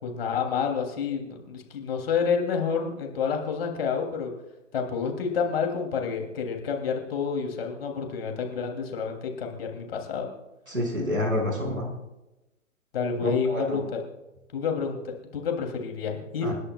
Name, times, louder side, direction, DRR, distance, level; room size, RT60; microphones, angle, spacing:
voice 1, 0.0-4.3 4.7-10.3 12.9-14.0 14.5-16.5, left 6 dB, 45° left, 3 dB, 3.2 m, -29 dB
voice 2, 10.7-11.9 13.2-13.8 16.4-16.5, left 1 dB, 85° right, 0 dB, 5.4 m, -28 dB
29.0 x 11.0 x 2.4 m, 0.99 s
figure-of-eight pair, 125°, 40 cm